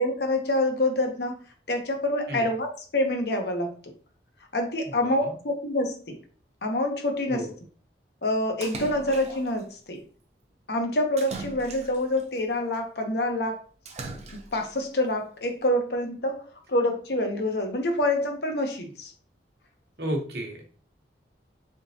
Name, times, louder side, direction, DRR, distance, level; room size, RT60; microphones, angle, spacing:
voice 1, 0.0-1.4 1.7-3.9 4.5-6.2 6.6-7.5 8.2-10.0 10.7-13.6 14.3-19.1, left 1 dB, 60° left, 4 dB, 0.8 m, -27 dB
voice 2, 4.9-5.4 7.3-7.5 20.0-20.6, right 1 dB, 55° right, 0 dB, 1.1 m, -33 dB
Splash splatter, 8.6-9.6 11.2-12.2 13.9-14.7, right 3 dB, 35° right, 0.5 m, -39 dB
3.8 x 3.6 x 2.7 m, 0.41 s
head